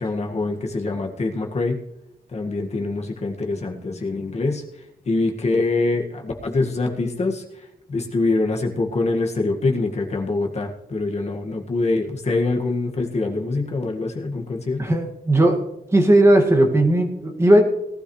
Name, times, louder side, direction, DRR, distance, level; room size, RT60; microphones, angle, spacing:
voice 1, 0.0-1.8 2.3-4.6 5.1-15.0, left 3 dB, 45° left, 2 dB, 1.8 m, -24 dB
voice 2, 14.8-15.6 15.9-17.6, right 1 dB, 20° right, 3 dB, 2.0 m, -16 dB
18.5 x 12.5 x 3.2 m, 0.88 s
wide cardioid pair, 145°, 15 cm